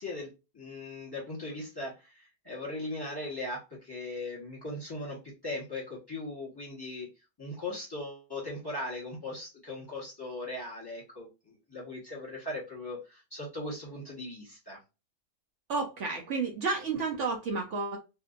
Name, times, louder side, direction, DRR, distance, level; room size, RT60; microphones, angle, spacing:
voice 1, 0.0-7.1 7.4-14.8, left 2 dB, 20° left, -4 dB, 1.1 m, -39 dB
voice 2, 15.7-18.0, right 4 dB, 65° right, 2 dB, 0.9 m, -31 dB
2.6 x 2.6 x 2.4 m, 0.27 s
omnidirectional pair, 1.5 m